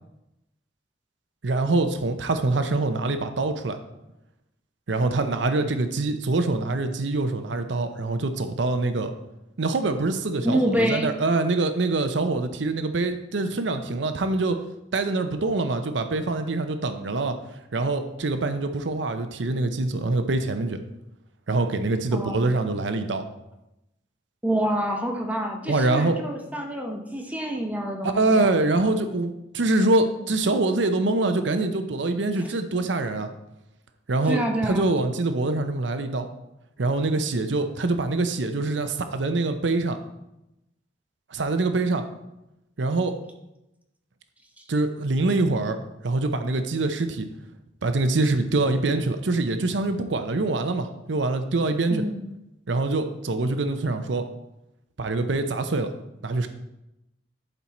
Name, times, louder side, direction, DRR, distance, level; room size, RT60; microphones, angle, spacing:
voice 1, 1.4-3.8 4.9-9.1 9.6-14.6 14.9-17.4 17.7-20.8 21.5-23.2 25.7-26.2 28.1-33.3 34.1-36.3 36.8-40.0 41.3-42.0 42.8-43.1 44.7-45.8 46.0-47.3 47.8-52.0 52.7-54.2 55.0-55.9 56.2-56.5, right 2 dB, 80° right, 8 dB, 0.7 m, -24 dB
voice 2, 10.4-11.1 22.1-22.5 24.4-28.5 34.3-34.9 51.9-52.2, right 1 dB, 10° right, 2 dB, 0.9 m, -27 dB
11.0 x 4.6 x 4.2 m, 0.90 s
head